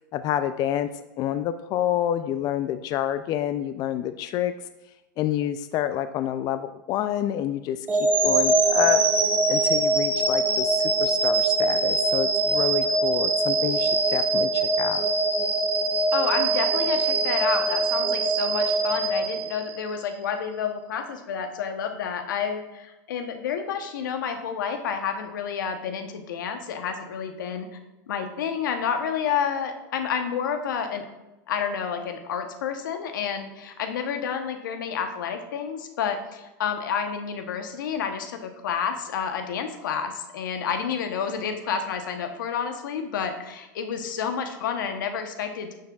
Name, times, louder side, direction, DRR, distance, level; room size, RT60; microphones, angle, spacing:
voice 1, 0.1-0.9 1.2-4.5 5.2-9.0 9.5-15.0, left 11 dB, 40° left, 11 dB, 0.3 m, -28 dB
sound 1, 7.9-20.0, right 3 dB, 20° right, 1.7 m, -23 dB
voice 2, 16.1-27.7 28.1-31.1 31.5-45.8, left 7 dB, 85° left, 6 dB, 0.9 m, -29 dB
9.4 x 6.4 x 2.4 m, 1.0 s
supercardioid pair, 120°, 10 cm